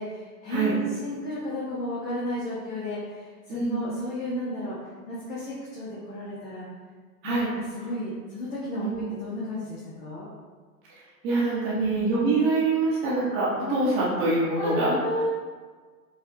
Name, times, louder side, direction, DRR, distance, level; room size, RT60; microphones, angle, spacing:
voice 1, 0.0-4.8 5.1-6.6 7.2-7.3 7.7-10.3 11.7-12.1 13.6-14.1 14.6-15.3, left 1 dB, 70° left, -8 dB, 1.3 m, -33 dB
voice 2, 3.5-3.8 7.2-7.5 8.8-9.0 11.2-15.0, right 3 dB, 25° right, -7 dB, 0.8 m, -25 dB
4.7 x 3.1 x 2.9 m, 1.5 s
figure-of-eight pair, 105°, 48 cm